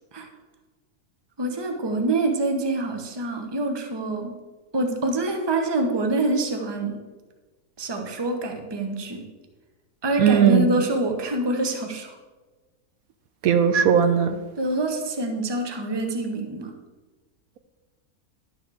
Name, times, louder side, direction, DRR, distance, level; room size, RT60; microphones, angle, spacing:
voice 1, 1.4-4.3 4.7-7.0 7.8-9.3 10.0-12.2 14.6-16.7, right 2 dB, 20° right, 4 dB, 0.8 m, -26 dB
voice 2, 10.2-10.7 13.4-14.4, right 8 dB, 75° right, 9 dB, 1.0 m, -18 dB
11.0 x 6.8 x 4.7 m, 1.2 s
omnidirectional pair, 1.6 m